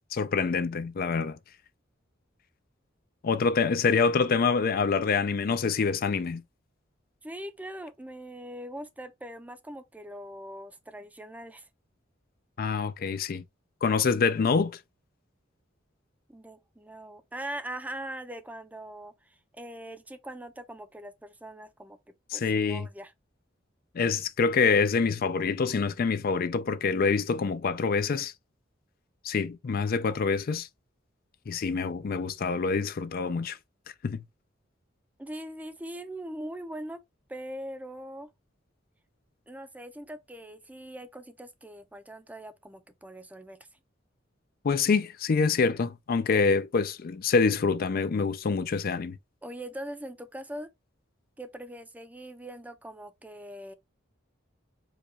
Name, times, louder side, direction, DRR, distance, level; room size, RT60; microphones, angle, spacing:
voice 1, 0.1-1.4 3.2-6.4 12.6-13.4 13.8-14.8 22.3-22.9 23.9-28.3 29.2-30.7 31.5-33.6 34.0-34.2 44.6-49.2, left 5 dB, 50° left, 0.4 m, -26 dB
voice 2, 7.2-11.7 16.3-22.0 22.3-23.1 35.2-37.0 37.3-38.3 39.5-43.6 49.4-50.7 51.4-53.7, right 1 dB, 10° right, 0.5 m, -41 dB
4.8 x 2.3 x 4.0 m
head